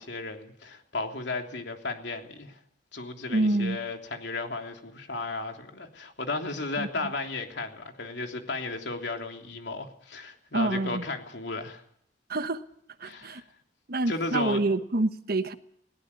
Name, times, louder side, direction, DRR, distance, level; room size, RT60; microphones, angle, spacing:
voice 1, 0.0-2.6 2.9-11.8 13.0-13.4 14.0-14.6, left 3 dB, 75° left, 4 dB, 3.2 m, -34 dB
voice 2, 3.3-3.8 6.8-6.9 10.5-11.0 12.3-12.6 13.0-13.4 13.9-15.5, right 2 dB, 55° right, 11 dB, 1.2 m, -27 dB
21.0 x 18.0 x 8.5 m, 0.67 s
head